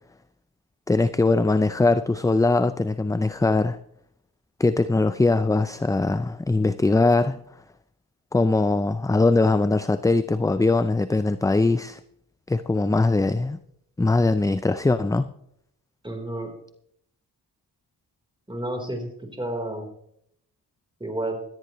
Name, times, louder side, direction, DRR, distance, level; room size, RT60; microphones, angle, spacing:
voice 1, 0.9-3.8 4.6-7.4 8.3-12.0 12.5-13.6 14.0-15.3, left 3 dB, 10° left, 12 dB, 0.4 m, -21 dB
voice 2, 16.0-16.5 18.5-19.9 21.0-21.4, right 1 dB, 10° right, 3 dB, 3.8 m, -31 dB
17.5 x 13.5 x 3.1 m, 0.72 s
cardioid pair, 75°, 41 cm